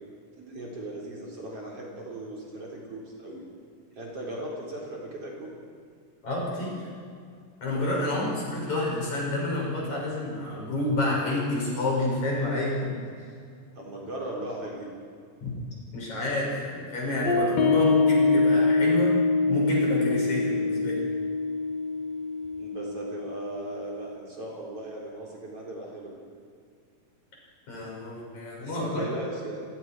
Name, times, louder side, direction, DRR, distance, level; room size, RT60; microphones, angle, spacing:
voice 1, 0.4-3.4 3.9-5.5 7.9-8.2 13.7-14.9 22.5-26.2 28.6-29.6, right 1 dB, 45° right, -3 dB, 4.8 m, -38 dB
voice 2, 6.2-6.9 7.6-13.0 15.4-15.5 15.9-19.2 19.5-21.0 27.7-29.0, left 2 dB, 55° left, -3 dB, 8.1 m, -29 dB
sound 1, 17.3-24.1, left 3 dB, 85° left, 3.8 m, -24 dB
29.5 x 18.5 x 4.7 m, 2.2 s
omnidirectional pair, 3.9 m